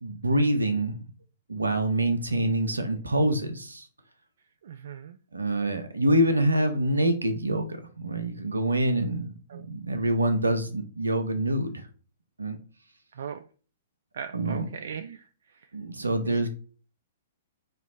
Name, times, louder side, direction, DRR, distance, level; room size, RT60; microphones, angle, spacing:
voice 1, 0.0-1.1 1.5-3.9 5.3-11.9 12.4-12.6 14.3-14.7 15.7-16.5, right 1 dB, 80° right, 7 dB, 0.8 m, -26 dB
voice 2, 4.6-5.2 9.5-9.7 13.1-13.5 14.1-15.7 16.3-16.5, right 7 dB, 60° right, 8 dB, 0.3 m, -40 dB
3.3 x 3.0 x 4.1 m, 0.39 s
figure-of-eight pair, 110°, 0 cm